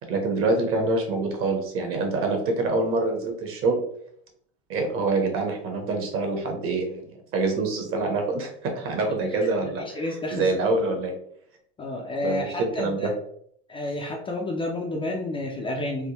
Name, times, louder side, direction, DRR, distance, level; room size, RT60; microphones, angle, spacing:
voice 1, 0.0-3.8 4.7-7.0 7.3-11.1 12.2-13.1, right 3 dB, 40° right, 3 dB, 0.9 m, -26 dB
voice 2, 9.6-10.5 11.8-13.1 13.7-16.1, left 2 dB, 15° left, -1 dB, 0.4 m, -30 dB
3.4 x 2.1 x 2.8 m, 0.67 s
hypercardioid pair, 100°, 32 cm